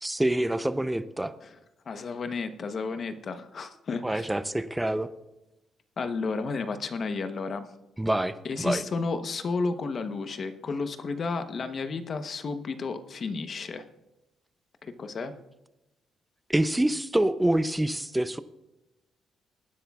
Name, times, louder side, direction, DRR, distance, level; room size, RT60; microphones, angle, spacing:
voice 1, 0.0-1.3 4.0-5.1 8.0-8.8 16.5-18.4, right 1 dB, 10° right, 13 dB, 0.6 m, -26 dB
voice 2, 1.9-4.3 6.0-7.7 8.4-13.8 14.8-15.3, left 4 dB, 45° left, 9 dB, 0.9 m, -32 dB
20.5 x 10.0 x 2.4 m, 0.97 s
cardioid pair, 90°, 0 cm